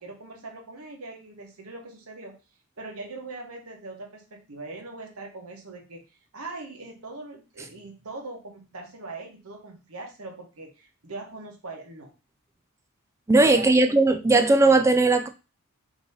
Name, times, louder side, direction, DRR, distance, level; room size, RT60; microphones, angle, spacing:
voice 1, 0.0-2.3 2.8-12.1 13.4-13.7, right 3 dB, 75° right, 1.1 m, -41 dB
voice 2, 13.3-15.3, right 2 dB, 15° right, 0.3 m, -18 dB
3.6 x 2.9 x 4.1 m
head